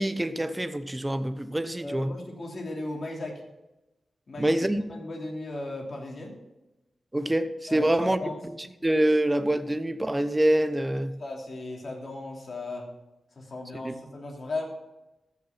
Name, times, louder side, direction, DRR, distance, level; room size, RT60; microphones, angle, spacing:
voice 1, 0.0-2.1 4.4-4.8 7.1-8.2 8.8-11.1 13.8-13.9, right 1 dB, 15° right, 12 dB, 0.8 m, -25 dB
voice 2, 1.8-3.4 4.3-4.6 4.9-6.4 7.7-8.4 11.2-12.9 13.4-14.7, left 2 dB, 50° left, 0 dB, 2.8 m, -36 dB
14.5 x 6.0 x 5.8 m, 0.98 s
wide cardioid pair, 85°, 0 cm